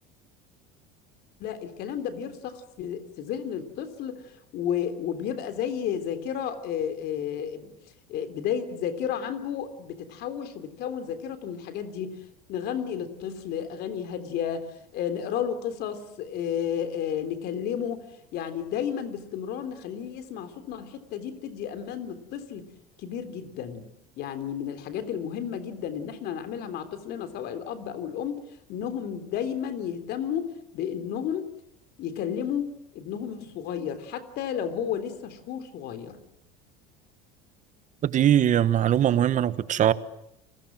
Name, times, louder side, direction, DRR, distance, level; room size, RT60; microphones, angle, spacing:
voice 1, 1.4-7.7 8.1-12.2 12.5-22.7 23.0-23.9 24.2-28.4 28.7-31.5 32.0-36.2, left 8 dB, 60° left, 3.5 m, -32 dB
voice 2, 38.0-39.9, right 10 dB, 40° right, 1.3 m, -21 dB
30.0 x 21.0 x 7.6 m
supercardioid pair, 115°, 19 cm